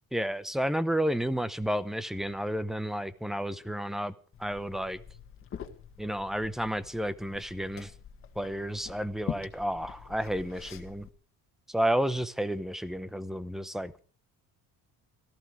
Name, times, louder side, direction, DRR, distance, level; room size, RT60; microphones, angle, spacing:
voice 1, 0.1-4.1 4.4-5.0 6.0-7.9 8.4-11.1 11.7-13.9, equal, ahead, 0.8 m, -31 dB
Liquid, 4.3-11.1, left 8 dB, 35° left, 2.0 m, -44 dB
18.0 x 14.5 x 4.8 m
cardioid pair, 145°, 36 cm